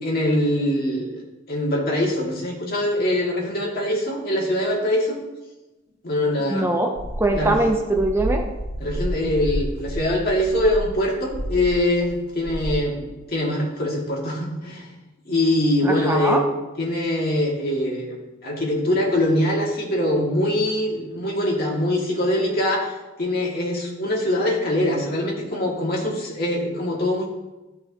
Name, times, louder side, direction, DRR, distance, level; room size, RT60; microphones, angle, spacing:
voice 1, 0.0-1.2 1.5-5.2 6.0-6.7 7.3-7.6 8.8-14.9 15.3-16.4 16.8-18.2 18.4-27.3, left 1 dB, 50° left, -3 dB, 2.1 m, -23 dB
voice 2, 6.5-8.4 15.8-16.4, right 2 dB, 10° right, 3 dB, 0.6 m, -22 dB
sound 1, 7.0-12.1 12.4-12.8, equal, 85° right, 1.6 m, -30 dB
13.5 x 5.3 x 2.9 m, 1.1 s
head